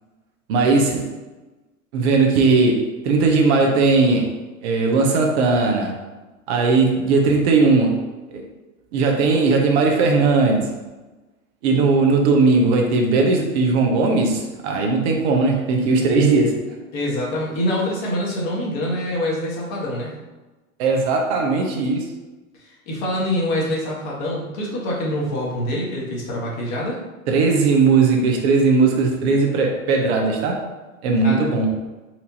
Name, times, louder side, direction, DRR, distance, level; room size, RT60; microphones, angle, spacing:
voice 1, 0.5-1.1 1.9-4.4 4.6-6.0 6.5-8.0 8.3-8.4 8.9-10.7 11.6-16.6 20.8-22.1 27.3-30.7 31.0-31.7, right 3 dB, 55° right, 2 dB, 0.8 m, -18 dB
voice 2, 16.9-20.1 22.9-27.0 31.2-31.5, left 1 dB, 50° left, -4 dB, 1.4 m, -25 dB
4.3 x 2.7 x 2.8 m, 1.2 s
hypercardioid pair, 95°, 40 cm